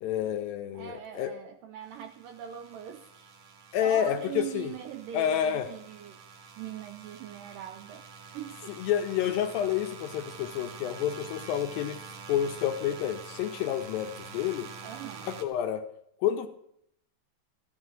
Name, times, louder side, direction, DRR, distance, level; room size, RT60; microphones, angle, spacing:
voice 1, 0.0-1.3 3.7-4.7 5.1-5.7 8.8-12.0 12.3-14.7 15.3-15.9 16.2-16.5, left 10 dB, 80° left, 6 dB, 2.2 m, -29 dB
voice 2, 0.7-3.3 3.8-6.2 6.6-8.1 8.3-8.8 14.8-15.4, right 10 dB, 85° right, 6 dB, 1.9 m, -41 dB
sound 1, 1.8-15.4, right 5 dB, 60° right, 2.1 m, -47 dB
14.5 x 6.2 x 9.0 m, 0.73 s
omnidirectional pair, 4.6 m